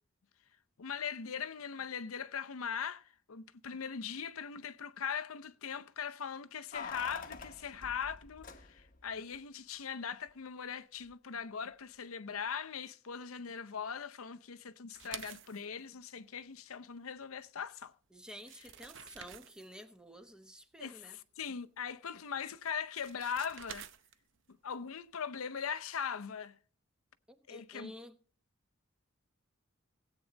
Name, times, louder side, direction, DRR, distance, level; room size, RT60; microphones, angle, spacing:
voice 1, 0.8-17.9 20.8-23.9 24.6-26.6 27.5-27.9, left 7 dB, 90° left, 0.7 m, -40 dB
Keys jangling, 6.7-9.1 9.3-9.4, left 5 dB, 40° left, 1.0 m, -46 dB
sound 1, 14.9-15.7 17.9-18.0 18.3-19.8 22.6-24.4, right 9 dB, 60° right, 0.7 m, -49 dB
voice 2, 18.1-21.2 27.3-28.2, equal, 5° right, 1.0 m, -51 dB
16.5 x 8.4 x 4.0 m
head